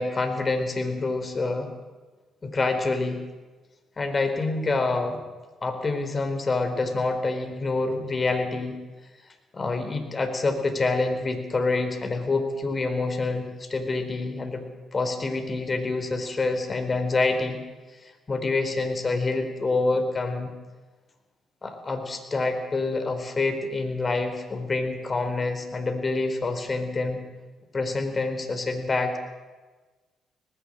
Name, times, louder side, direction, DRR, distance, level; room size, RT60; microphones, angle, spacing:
voice 1, 0.0-1.7 2.4-3.2 4.0-5.2 5.6-8.8 9.5-14.6 14.9-17.6 18.0-20.5 21.6-27.2 27.7-29.2, left 3 dB, 35° left, 6 dB, 4.2 m, -27 dB
19.0 x 16.5 x 8.8 m, 1.3 s
hypercardioid pair, 45°, 0 cm